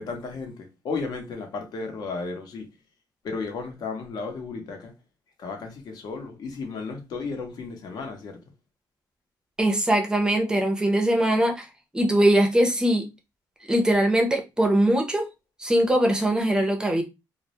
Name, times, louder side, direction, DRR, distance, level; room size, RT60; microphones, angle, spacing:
voice 1, 0.0-2.7 3.2-4.9 5.4-8.4, left 4 dB, 60° left, 0.7 m, -34 dB
voice 2, 9.6-11.7 11.9-13.1 13.7-15.3 15.6-17.0, right 1 dB, 10° right, 0.5 m, -21 dB
2.2 x 2.0 x 2.8 m
cardioid pair, 135°, 8 cm